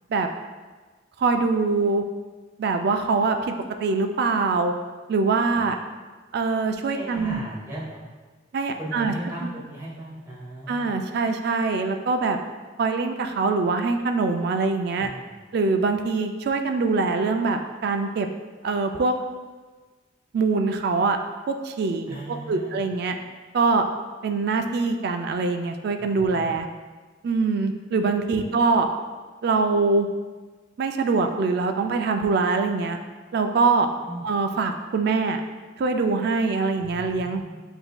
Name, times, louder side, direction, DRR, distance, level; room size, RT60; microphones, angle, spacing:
voice 1, 1.2-2.0 2.6-3.5 3.8-4.7 5.1-5.8 6.3-7.4 8.5-9.1 10.7-12.4 12.8-15.1 15.5-18.3 18.6-19.1 20.3-21.2 21.5-22.2 22.5-23.2 23.5-23.9 24.2-26.7 27.2-28.9 29.4-30.1 30.8-33.0 33.3-33.9 34.2-35.4 35.8-37.4, right 4 dB, 55° right, 5 dB, 0.3 m, -23 dB
voice 2, 6.9-8.0 8.8-10.9 15.0-15.3 22.1-22.8 26.0-26.5 28.5-28.6 34.0-34.3 36.8-37.6, right 1 dB, 10° right, -6 dB, 1.1 m, -37 dB
7.7 x 2.6 x 2.2 m, 1.4 s
head